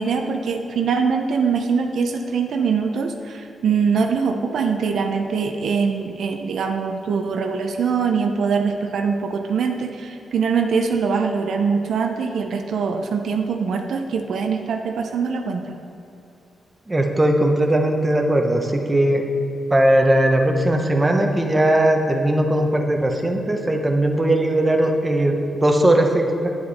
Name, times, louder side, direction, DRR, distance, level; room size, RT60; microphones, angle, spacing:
voice 1, 0.0-15.8, right 5 dB, 70° right, 4 dB, 0.6 m, -23 dB
voice 2, 16.9-19.2 19.7-26.5, right 1 dB, 20° right, 3 dB, 0.8 m, -19 dB
9.9 x 7.9 x 4.2 m, 2.8 s
wide cardioid pair, 135°, 0 cm